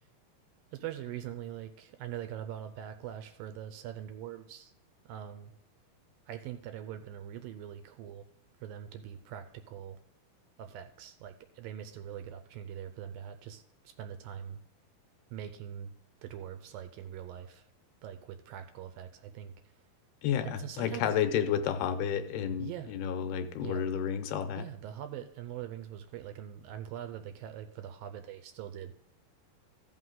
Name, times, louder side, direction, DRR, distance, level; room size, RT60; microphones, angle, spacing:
voice 1, 0.7-4.7 5.1-5.5 6.3-8.2 8.6-10.0 10.6-13.6 14.0-14.6 15.3-15.9 16.2-17.7 18.0-19.5 20.4-21.2 22.6-22.9 23.6-23.9 24.6-28.9, right 10 dB, 80° right, 8 dB, 2.2 m, -42 dB
voice 2, 20.2-24.6, left 8 dB, 80° left, 8 dB, 2.6 m, -31 dB
14.5 x 5.7 x 3.8 m, 0.69 s
omnidirectional pair, 4.4 m